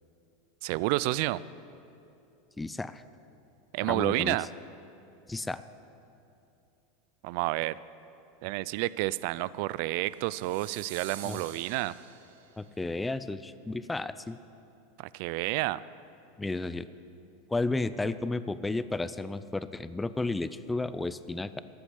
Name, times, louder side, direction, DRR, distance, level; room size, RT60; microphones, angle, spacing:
voice 1, 0.6-1.4 3.7-4.5 7.2-7.8 8.4-11.9 15.0-15.8, right 18 dB, 60° right, 19 dB, 0.3 m, -30 dB
voice 2, 2.6-3.0 3.9-4.4 5.3-5.6 11.2-11.4 12.6-14.4 16.4-16.8 17.5-21.6, left 2 dB, 10° left, 14 dB, 0.5 m, -32 dB
sound 1, 10.2-12.6, right 9 dB, 75° right, 1.1 m, -47 dB
14.0 x 8.3 x 8.1 m, 2.7 s
hypercardioid pair, 95°, 0 cm